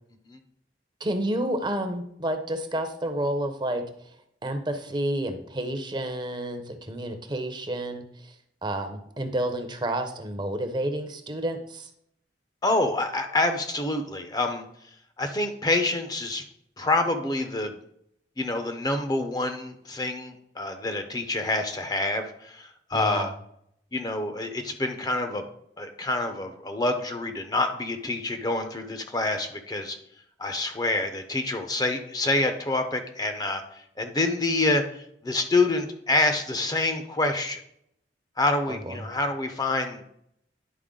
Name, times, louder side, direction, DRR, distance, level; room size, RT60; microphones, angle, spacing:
voice 1, 1.0-3.8 4.4-8.3 8.6-11.9 22.9-23.3 38.7-39.0, right 1 dB, 25° right, 6 dB, 0.7 m, -30 dB
voice 2, 12.6-14.7 15.2-16.4 16.8-17.7 18.4-23.3 23.9-25.4 25.8-30.0 30.4-37.6 38.4-40.1, left 2 dB, 20° left, 6 dB, 0.6 m, -27 dB
10.0 x 4.4 x 3.7 m, 0.71 s
head